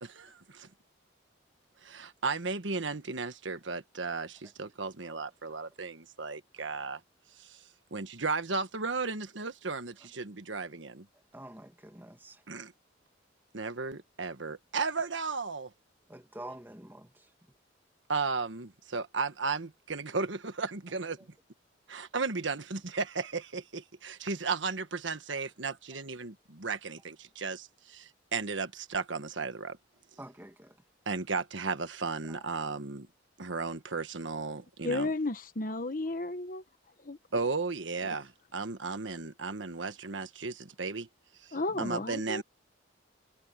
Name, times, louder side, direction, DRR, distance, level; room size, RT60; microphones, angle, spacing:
voice 1, 0.0-0.7 1.8-7.0 7.4-7.6 7.9-11.1 12.5-12.7 13.5-15.7 18.1-21.2 21.9-29.8 31.1-33.1 33.4-35.1 37.3-41.1 41.4-42.4, right 4 dB, 75° right, 1.4 m, -35 dB
voice 2, 11.3-12.4 16.1-17.1 30.2-30.7 41.7-41.8, right 1 dB, 10° right, 1.8 m, -47 dB
voice 3, 34.8-36.6 37.0-37.2 41.5-42.4, left 2 dB, 45° left, 1.1 m, -33 dB
head